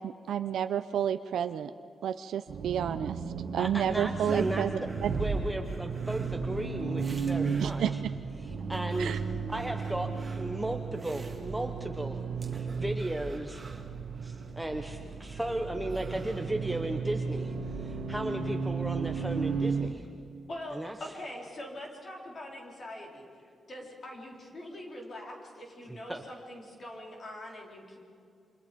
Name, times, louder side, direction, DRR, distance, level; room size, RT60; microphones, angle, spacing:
voice 1, 0.0-1.7 2.0-3.2 3.5-4.8 7.6-7.9 9.0-9.2, right 9 dB, 90° right, 10 dB, 0.6 m, -30 dB
Accelerating revving vroom, 2.5-19.9, right 5 dB, 65° right, 1.7 m, -34 dB
voice 2, 3.6-8.0 8.4-9.2 9.5-10.1 10.4-13.6 14.2-20.1 20.7-21.0 25.9-26.2, right 1 dB, 5° right, 4 dB, 0.9 m, -35 dB
sound 1, 4.2-8.1 8.6-11.9 12.4-14.5 15.4-15.5 15.7-16.8, right 3 dB, 20° right, 2.0 m, -50 dB
voice 3, 20.5-23.2 23.7-28.0, left 1 dB, 35° left, 0 dB, 4.2 m, -43 dB
29.0 x 26.0 x 5.2 m, 2.5 s
wide cardioid pair, 180°, 0 cm